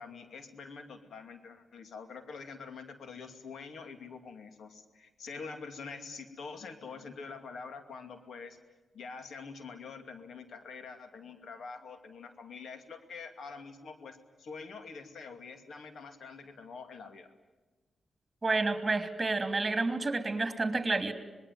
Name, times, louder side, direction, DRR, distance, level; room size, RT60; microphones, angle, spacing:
voice 1, 0.0-8.6 8.9-17.3, left 5 dB, 75° left, 8 dB, 2.5 m, -45 dB
voice 2, 18.4-21.1, right 3 dB, 30° right, 8 dB, 3.0 m, -29 dB
26.0 x 20.5 x 9.4 m, 1.2 s
cardioid pair, 60°, 0 cm